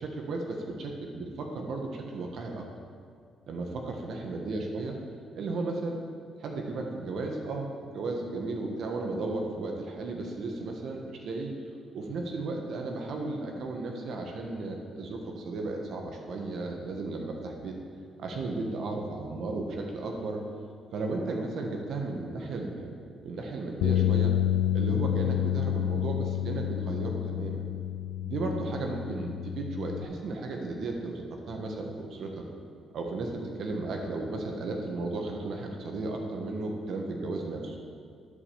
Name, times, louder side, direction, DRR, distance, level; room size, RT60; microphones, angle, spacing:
voice 1, 0.0-2.6 3.5-4.9 5.3-6.0 6.4-11.5 11.9-17.7 18.2-20.4 20.9-23.0 23.2-24.3 24.7-27.7 28.2-32.4 32.9-37.8, right 3 dB, 70° right, 1 dB, 1.3 m, -34 dB
sound 1, 23.8-30.1, left 12 dB, 85° left, 0.3 m, -29 dB
11.0 x 5.0 x 7.1 m, 2.1 s
cardioid pair, 90°, 0 cm